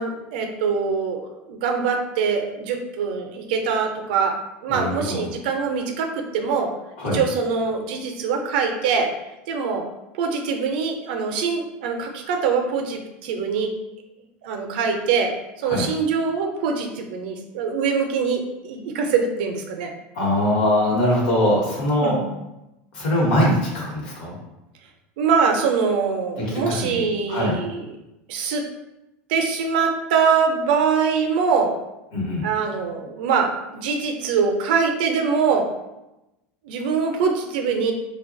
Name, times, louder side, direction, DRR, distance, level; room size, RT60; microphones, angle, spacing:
voice 1, 0.0-4.4 4.6-6.7 7.1-9.1 9.5-9.8 10.1-13.7 14.4-15.3 15.6-19.9 22.0-22.2 25.2-27.8 28.3-28.6 29.3-31.7 32.4-35.7 36.7-37.9, right 5 dB, 65° right, 4 dB, 0.4 m, -23 dB
voice 2, 4.7-5.3 7.0-7.2 15.6-15.9 20.1-22.2 22.9-24.3 26.4-27.0 27.3-27.5 32.1-32.4, left 1 dB, 65° left, -3 dB, 1.0 m, -22 dB
2.9 x 2.2 x 2.5 m, 0.94 s
supercardioid pair, 180°, 5 cm